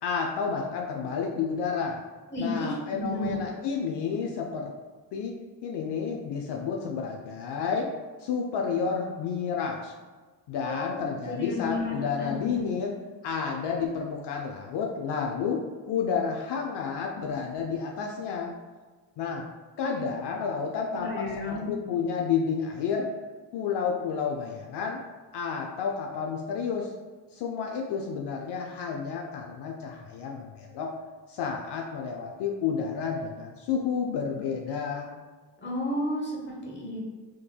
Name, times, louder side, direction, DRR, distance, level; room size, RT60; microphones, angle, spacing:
voice 1, 0.0-2.0 2.4-4.7 5.1-5.3 5.6-7.9 8.2-9.9 10.5-12.9 13.2-18.5 19.2-19.4 19.8-23.1 23.5-25.0 25.3-26.9 27.3-30.9 31.3-35.1, left 6 dB, 70° left, 1 dB, 0.5 m, -30 dB
voice 2, 2.3-3.4 10.6-11.0 11.3-12.7 19.8-20.0 20.9-21.7 35.6-37.1, left 2 dB, 25° left, -3 dB, 1.0 m, -32 dB
3.6 x 3.2 x 2.3 m, 1.4 s
cardioid pair, 80°, 42 cm